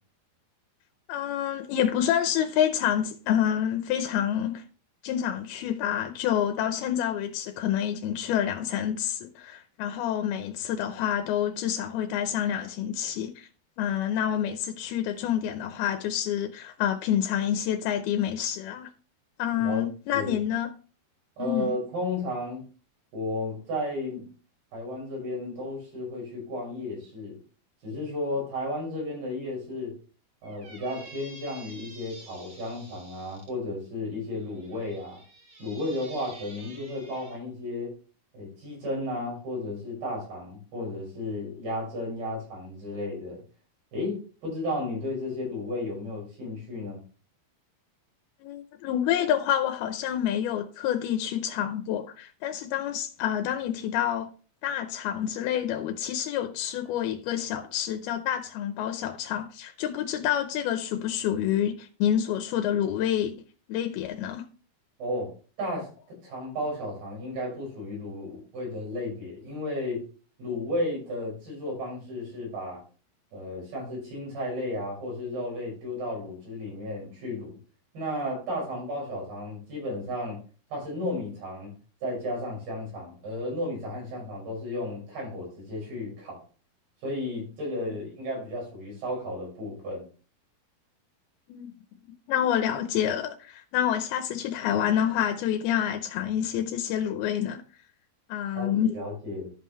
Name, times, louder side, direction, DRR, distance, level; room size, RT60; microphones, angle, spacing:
voice 1, 1.1-4.6 5.0-13.5 13.8-18.9 19.4-20.7 21.4-21.8 48.4-54.3 54.6-63.3 63.7-64.5 87.8-88.0 91.5-91.7 92.3-97.6 98.3-98.9, left 10 dB, 90° left, 2.7 m, -28 dB
voice 2, 19.5-19.8 20.1-20.4 21.4-22.7 23.1-24.2 24.7-27.4 27.8-29.9 30.4-35.2 35.6-37.9 38.3-43.4 43.9-47.0 65.0-65.3 65.6-70.0 70.4-72.8 73.3-77.6 77.9-80.4 80.7-81.7 82.0-86.4 87.0-90.1 98.5-99.5, left 1 dB, 75° right, 7.7 m, -33 dB
Squeak, 30.4-33.5 34.3-37.4, right 2 dB, 35° right, 2.2 m, -49 dB
13.5 x 5.6 x 3.2 m
omnidirectional pair, 4.4 m